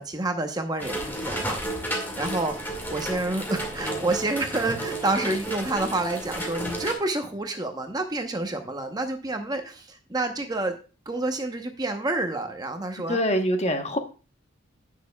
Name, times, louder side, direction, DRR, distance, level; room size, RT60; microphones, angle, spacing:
voice 1, 0.0-1.6 2.2-10.8 11.1-13.2, right 2 dB, 20° right, 5 dB, 0.8 m, -28 dB
sound 1, 0.8-6.9, right 1 dB, 10° left, 1.9 m, -32 dB
voice 2, 13.1-14.0, equal, 30° left, 6 dB, 1.0 m, -24 dB
16.5 x 6.5 x 2.3 m, 0.35 s
head